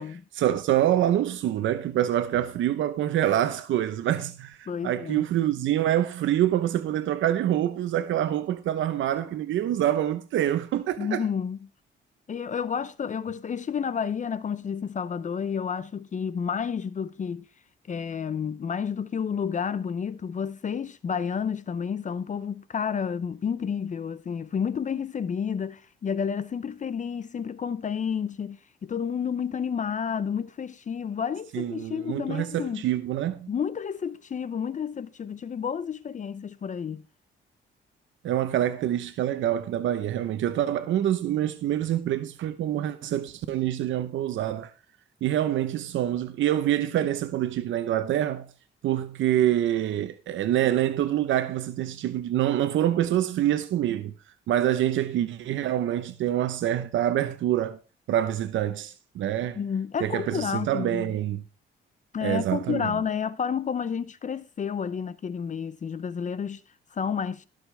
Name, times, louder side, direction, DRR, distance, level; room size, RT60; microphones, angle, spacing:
voice 1, 0.3-11.2 31.5-33.5 38.2-44.7 45.2-48.4 48.8-54.1 54.5-57.8 58.1-59.6 60.0-61.4 62.2-62.9, right 12 dB, 75° right, 0.9 m, -26 dB
voice 2, 4.7-5.3 11.0-11.7 12.3-17.5 17.9-32.8 33.5-37.0 59.6-61.1 62.1-66.6 66.9-67.5, left 7 dB, 40° left, 0.7 m, -30 dB
17.0 x 6.6 x 3.4 m
cardioid pair, 90°, 20 cm